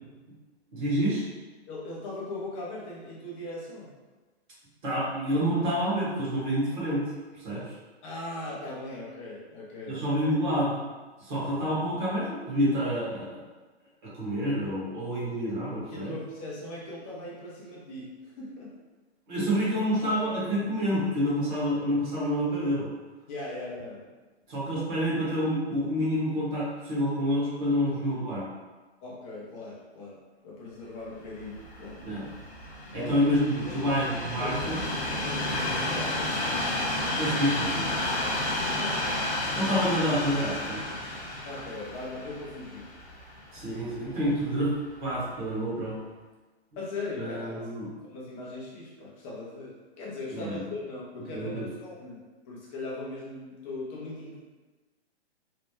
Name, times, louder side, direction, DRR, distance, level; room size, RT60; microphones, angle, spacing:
voice 1, 0.7-1.2 4.8-7.1 7.4-7.6 9.9-10.8 11.2-13.4 14.1-16.1 19.3-22.9 24.5-28.5 32.0-32.3 32.9-34.8 37.2-37.9 39.6-40.8 43.5-44.7 45.0-46.0 47.2-47.9 50.3-50.6 51.3-51.7, equal, 45° right, -7 dB, 1.5 m, -28 dB
voice 2, 1.7-3.9 8.0-10.0 15.9-18.7 23.3-24.1 29.0-32.0 33.0-33.2 33.7-34.0 34.4-34.9 35.2-36.2 38.2-39.2 41.4-43.0 43.6-43.7 46.8-47.7 48.0-52.2 52.5-54.4, left 2 dB, 15° left, -6 dB, 0.3 m, -39 dB
Train, 31.2-44.5 45.1-45.3, left 1 dB, 35° left, 0.9 m, -32 dB
3.1 x 2.1 x 3.0 m, 1.3 s
hypercardioid pair, 130°, 33 cm